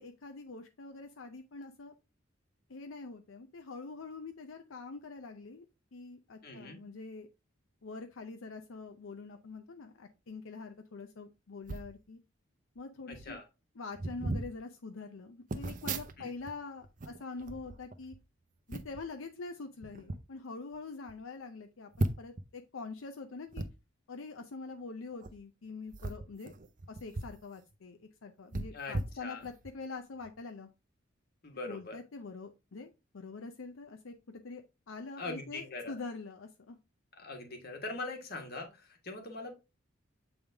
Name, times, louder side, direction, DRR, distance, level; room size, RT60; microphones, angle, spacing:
voice 1, 0.0-1.9 2.7-5.7 5.9-7.3 7.8-12.2 12.8-13.4 13.8-18.1 18.7-23.6 24.1-26.5 26.9-30.7 31.7-36.8, left 3 dB, 80° left, 5 dB, 0.6 m, -45 dB
voice 2, 6.4-6.9 13.1-13.4 16.2-16.3 28.7-29.4 31.4-32.0 35.2-35.9 37.1-39.6, left 3 dB, 50° left, 3 dB, 1.4 m, -42 dB
sound 1, 11.6-11.9 12.8-12.9 13.1-13.4 13.9-14.5 15.5-16.5 16.8-18.2 18.7-19.1 19.8-20.2 20.7-20.8 21.1-21.2 22.0-22.4 23.5-23.7 25.1-25.3 25.9-27.4 27.7-27.8 28.5-29.7 30.2-30.4, right 2 dB, 40° right, 0.6 m, -37 dB
8.0 x 3.5 x 3.4 m, 0.26 s
head